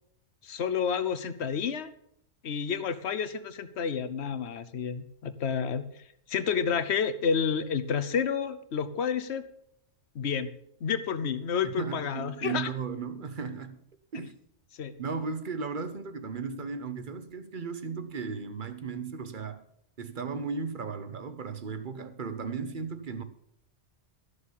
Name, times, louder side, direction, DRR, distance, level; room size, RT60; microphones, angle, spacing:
voice 1, 0.4-1.9 2.4-5.8 6.3-9.4 10.1-10.5 10.8-12.7 14.8-14.9, left 6 dB, 65° left, 1.1 m, -30 dB
voice 2, 11.6-13.8 14.1-14.4 15.0-19.6 20.0-23.2, right 5 dB, 45° right, 1.1 m, -36 dB
13.0 x 6.7 x 7.3 m
omnidirectional pair, 1.2 m